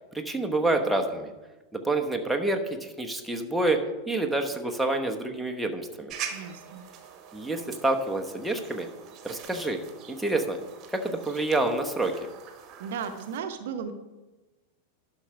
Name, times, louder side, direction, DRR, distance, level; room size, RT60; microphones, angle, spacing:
voice 1, 0.1-1.3 1.7-6.1 7.3-8.9 9.2-9.8 10.1-10.6 10.9-12.2, right 2 dB, 5° right, 2 dB, 1.0 m, -28 dB
sound 1, 6.1-13.4, right 8 dB, 35° right, 1.2 m, -44 dB
voice 2, 6.3-6.8 12.8-13.9, right 6 dB, 55° right, 8 dB, 0.8 m, -35 dB
11.5 x 5.7 x 5.1 m, 1.1 s
figure-of-eight pair, 90°, 0 cm